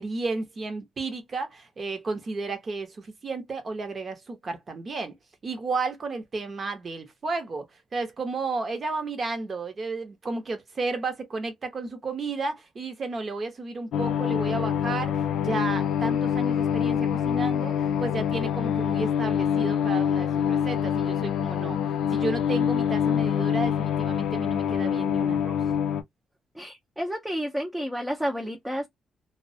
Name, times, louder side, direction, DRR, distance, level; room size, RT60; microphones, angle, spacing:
voice 1, 0.0-5.1 5.4-7.6 7.9-21.8 22.1-25.6, right 3 dB, 35° right, 0.7 m, -32 dB
sound 1, 13.9-26.0, left 8 dB, 90° left, 0.4 m, -25 dB
voice 2, 26.5-28.9, equal, 5° right, 0.5 m, -30 dB
2.2 x 2.1 x 2.6 m
cardioid pair, 140°, 0 cm